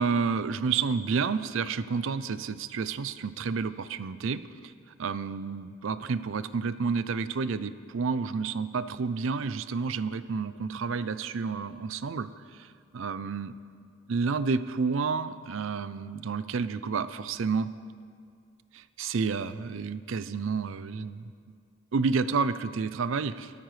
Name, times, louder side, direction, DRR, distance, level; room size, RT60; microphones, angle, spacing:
voice 1, 0.0-4.4 5.0-12.3 12.6-12.7 12.9-13.5 14.1-17.7 18.7-21.2 21.9-23.5, right 5 dB, 70° right, 14 dB, 0.5 m, -30 dB
18.0 x 13.0 x 3.2 m, 2.1 s
head